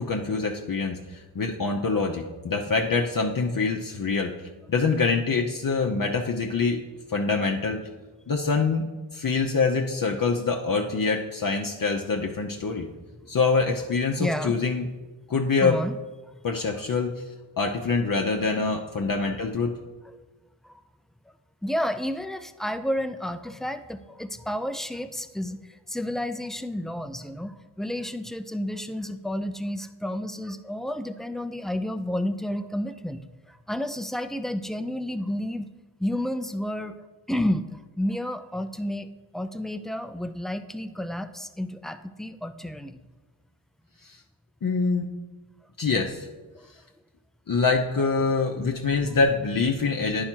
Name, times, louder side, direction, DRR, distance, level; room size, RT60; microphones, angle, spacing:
voice 1, 0.0-4.3 4.7-6.8 7.1-7.8 8.3-8.9 9.1-12.9 13.3-14.9 15.3-15.8 16.4-17.1 17.6-19.7 44.0-44.2 44.6-45.0 45.8-46.3 47.5-50.2, left 4 dB, 45° left, 2 dB, 0.8 m, -25 dB
voice 2, 14.2-14.5 15.6-16.0 20.1-20.2 20.6-20.8 21.6-33.2 33.5-35.7 36.0-37.0 37.3-43.0 46.5-46.7, left 1 dB, ahead, 9 dB, 0.5 m, -31 dB
9.7 x 4.8 x 4.5 m, 1.2 s
cardioid pair, 45°, 47 cm